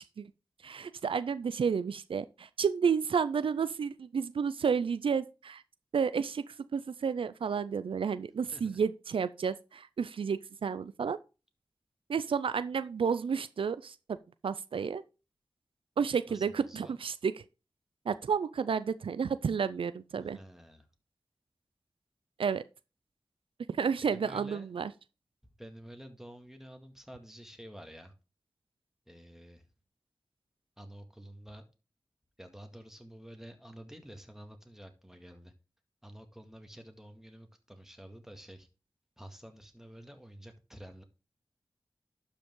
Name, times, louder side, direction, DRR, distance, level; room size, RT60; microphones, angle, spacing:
voice 1, 0.6-5.6 5.9-11.2 12.1-14.2 14.4-15.0 16.0-17.3 18.1-20.4 22.4-22.6 23.7-24.9, right 6 dB, 85° right, 0.4 m, -31 dB
voice 2, 16.3-17.0 20.2-20.9 24.1-24.7 25.6-28.1 29.1-29.6 30.8-31.7 32.4-35.5 36.0-38.7 39.2-41.0, equal, 5° right, 1.9 m, -50 dB
11.5 x 5.2 x 3.7 m
wide cardioid pair, 60°, 9 cm